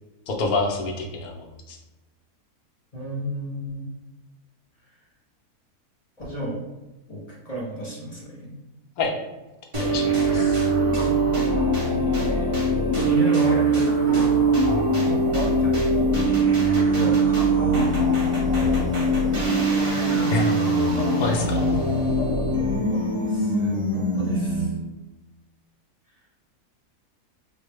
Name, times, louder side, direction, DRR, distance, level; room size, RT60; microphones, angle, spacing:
voice 1, 0.3-1.8 9.0-9.1 9.8-10.6 20.3-20.5 21.2-21.7, left 3 dB, 70° left, 1 dB, 1.1 m, -27 dB
voice 2, 2.9-3.9 4.9-5.0 6.2-6.6 7.1-8.6 11.8-12.5 13.0-14.3 15.0-16.2 16.9-17.9 22.9-24.8 26.1-26.2, right 1 dB, 35° left, -5 dB, 0.6 m, -32 dB
sound 1, 9.7-24.9, right 2 dB, 30° right, 0.6 m, -22 dB
4.6 x 2.0 x 3.3 m, 1.1 s
omnidirectional pair, 1.7 m